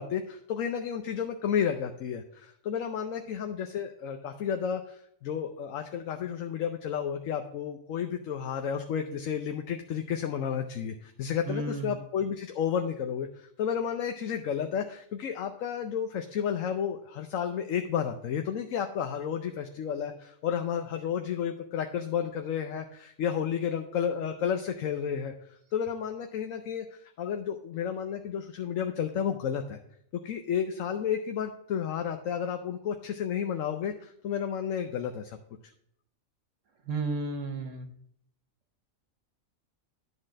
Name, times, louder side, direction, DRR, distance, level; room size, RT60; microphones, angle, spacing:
voice 1, 0.0-29.8 30.1-35.4, left 8 dB, 80° left, 6 dB, 1.1 m, -32 dB
voice 2, 11.4-12.0 36.9-37.9, right 3 dB, 75° right, 6 dB, 1.3 m, -33 dB
11.0 x 4.1 x 6.3 m, 0.70 s
omnidirectional pair, 1.4 m